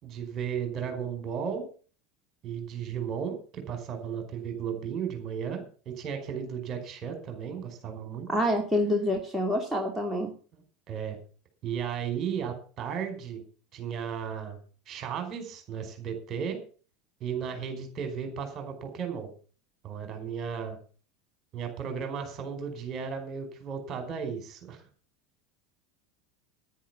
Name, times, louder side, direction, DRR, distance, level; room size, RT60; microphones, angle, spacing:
voice 1, 0.0-1.6 2.4-8.3 10.5-11.2 11.6-13.4 13.7-14.6 14.9-16.6 17.2-19.3 19.8-20.8 21.5-24.8, right 7 dB, 35° right, 6 dB, 4.9 m, -35 dB
voice 2, 8.3-10.3, left 1 dB, 5° right, 0 dB, 2.5 m, -27 dB
10.5 x 10.0 x 7.3 m, 0.40 s
figure-of-eight pair, 75°, 0 cm